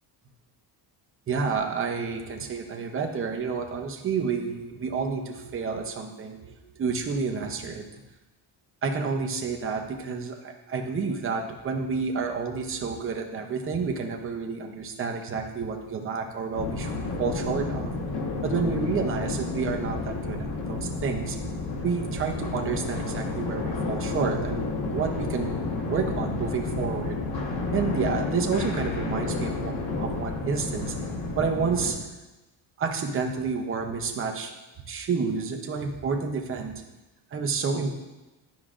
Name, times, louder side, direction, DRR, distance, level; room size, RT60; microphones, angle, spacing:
voice 1, 1.3-7.8 8.8-16.9 17.2-17.9 18.4-21.4 21.8-27.2 27.7-30.9 31.4-32.0 32.8-34.5 34.9-36.7 37.3-37.9, right 5 dB, 30° right, 2 dB, 0.7 m, -29 dB
sound 1, 16.5-31.9, left 3 dB, 55° left, 1.2 m, -31 dB
12.0 x 4.9 x 2.5 m, 1.1 s
cardioid pair, 180°, 45 cm